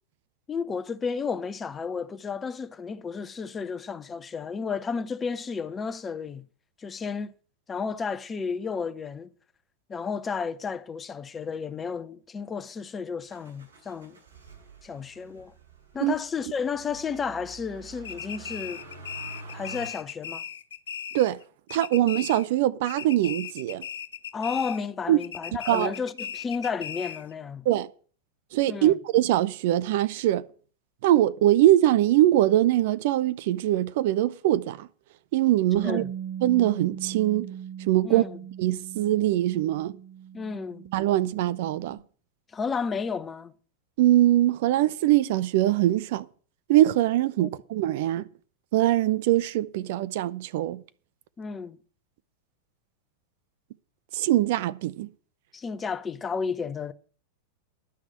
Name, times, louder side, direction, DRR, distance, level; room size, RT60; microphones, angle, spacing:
voice 1, 0.5-6.5 6.8-7.3 7.7-9.3 9.9-14.2 14.8-15.5 15.9-18.8 19.5-20.4 24.3-27.7 28.7-29.0 35.8-36.1 38.0-38.3 40.3-40.8 42.5-43.5 47.4-47.5 51.4-51.8 55.5-56.9, left 5 dB, 20° left, 0.7 m, -32 dB
Motor vehicle (road), 13.3-19.9, right 4 dB, 70° right, 7.5 m, -47 dB
sound 1, 18.0-21.4 21.7-22.6 22.9-24.9 25.2-27.3, left 8 dB, 65° left, 0.5 m, -38 dB
voice 2, 21.7-23.9 25.1-25.2 25.7-25.9 27.6-27.9 28.5-30.4 31.0-34.9 35.3-36.0 36.4-37.5 37.9-38.2 38.6-40.0 40.9-42.0 44.0-46.3 46.7-48.3 48.7-50.8 54.1-55.1, right 14 dB, 50° right, 0.6 m, -22 dB
Bass guitar, 35.8-42.0, right 9 dB, 20° right, 1.2 m, -39 dB
11.5 x 6.1 x 8.8 m
figure-of-eight pair, 90°, 0 cm